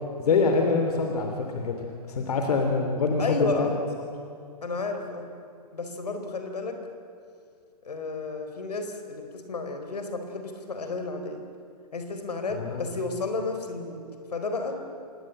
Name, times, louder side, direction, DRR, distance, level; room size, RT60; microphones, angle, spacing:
voice 1, 0.2-3.8 12.5-12.9, left 4 dB, 70° left, 4 dB, 3.3 m, -25 dB
voice 2, 3.2-3.8 4.6-5.3 5.7-6.8 7.8-11.4 11.9-14.0 14.3-14.8, left 3 dB, 85° left, 6 dB, 4.2 m, -32 dB
26.5 x 19.5 x 9.1 m, 2.6 s
hypercardioid pair, 130°, 20 cm